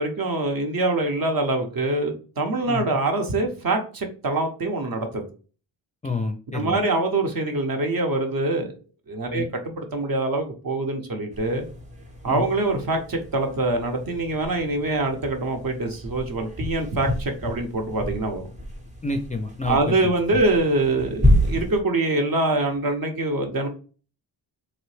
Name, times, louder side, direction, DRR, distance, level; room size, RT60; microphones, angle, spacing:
voice 1, 0.0-5.2 6.5-8.7 9.1-11.6 12.2-18.4 19.7-23.7, right 2 dB, 50° right, 4 dB, 0.8 m, -24 dB
voice 2, 6.0-6.8 9.3-9.5 12.2-12.4 19.0-19.9 20.3-20.4, left 3 dB, 20° left, 5 dB, 0.3 m, -28 dB
sound 1, 11.3-21.8, equal, 15° right, 0.7 m, -29 dB
2.9 x 2.1 x 3.1 m, 0.38 s
cardioid pair, 55°, 45 cm